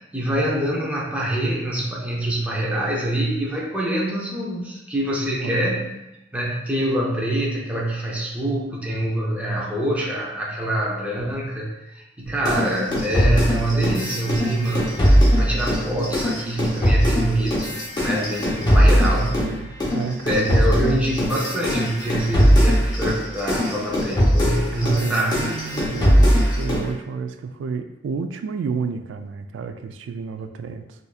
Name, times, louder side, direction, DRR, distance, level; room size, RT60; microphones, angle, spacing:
voice 1, 0.1-5.9 6.3-17.7 18.0-19.4 20.2-25.5, right 1 dB, 10° right, -4 dB, 0.6 m, -25 dB
sound 1, 12.4-19.5 19.8-26.9, equal, 25° left, 0.9 m, -20 dB
voice 2, 19.4-20.9 24.7-31.1, right 5 dB, 75° right, 8 dB, 0.3 m, -31 dB
4.0 x 2.5 x 2.4 m, 0.93 s
head